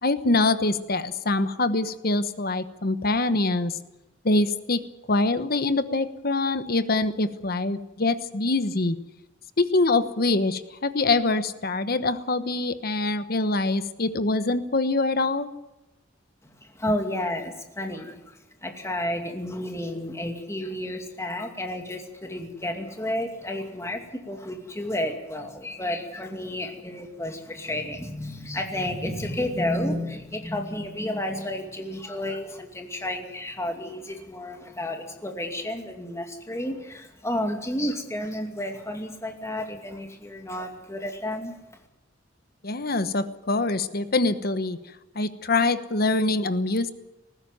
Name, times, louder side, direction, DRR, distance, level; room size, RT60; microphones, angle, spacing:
voice 1, 0.0-3.8 4.2-4.8 5.1-9.0 9.6-15.5 42.6-44.8 45.1-46.9, left 2 dB, 55° left, 12 dB, 1.1 m, -24 dB
voice 2, 16.7-41.5, left 1 dB, 15° left, 4 dB, 2.5 m, -31 dB
19.5 x 15.0 x 9.3 m, 0.97 s
head